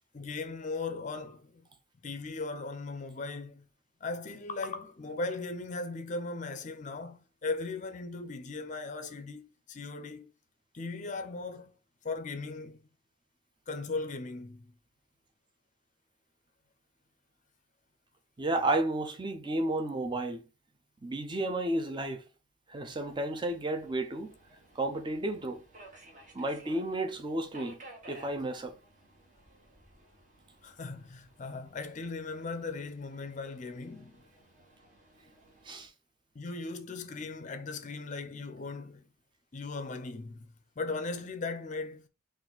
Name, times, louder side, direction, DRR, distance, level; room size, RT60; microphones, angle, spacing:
voice 1, 0.1-1.7 2.0-3.6 4.0-9.4 9.7-10.3 10.7-11.7 12.0-12.9 13.7-14.7 30.6-34.2 36.3-39.1 39.5-40.5 40.8-42.1, left 3 dB, 35° left, 0.5 m, -38 dB
voice 2, 18.4-20.4 21.0-22.2 22.7-24.3 24.7-25.6 26.3-27.8 28.1-28.8 35.6-35.9, right 2 dB, 20° right, 0.5 m, -32 dB
Subway metro underground, 22.8-35.9, right 1 dB, 40° right, 1.2 m, -56 dB
4.1 x 2.5 x 3.8 m
head